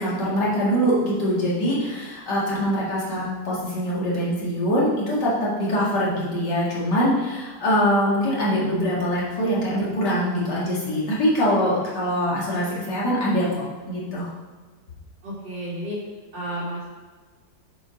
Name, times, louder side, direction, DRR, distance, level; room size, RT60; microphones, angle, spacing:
voice 1, 0.0-13.5 13.9-14.3, equal, 65° left, -6 dB, 2.7 m, -23 dB
voice 2, 15.2-16.0 16.3-16.9, equal, 90° right, -7 dB, 3.1 m, -31 dB
7.6 x 5.2 x 5.2 m, 1.4 s
omnidirectional pair, 2.0 m